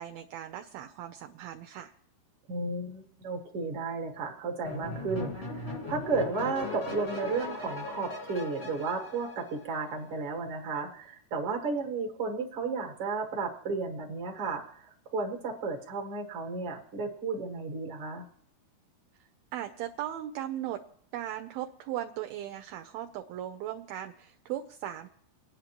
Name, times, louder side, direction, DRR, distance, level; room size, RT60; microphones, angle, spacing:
voice 1, 0.0-1.9 19.5-20.8 21.1-25.1, right 12 dB, 80° right, 7 dB, 2.2 m, -38 dB
voice 2, 2.5-18.2, right 4 dB, 55° right, 1 dB, 1.7 m, -33 dB
sound 1, 4.6-10.1, left 3 dB, 40° left, 0.8 m, -39 dB
29.5 x 10.0 x 2.9 m, 0.71 s
omnidirectional pair, 4.7 m